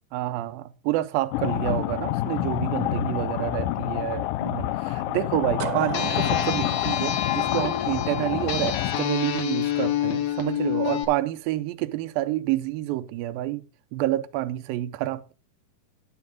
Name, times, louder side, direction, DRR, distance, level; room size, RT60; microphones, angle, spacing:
voice 1, 0.1-13.6 13.9-15.3, right 15 dB, 85° right, 2.4 m, -28 dB
sound 1, 1.3-9.0, left 14 dB, 80° left, 2.3 m, -28 dB
sound 2, 5.6-8.4, right 10 dB, 70° right, 2.0 m, -35 dB
sound 3, 5.9-11.1, left 10 dB, 65° left, 2.5 m, -28 dB
10.5 x 9.8 x 3.6 m
omnidirectional pair, 4.1 m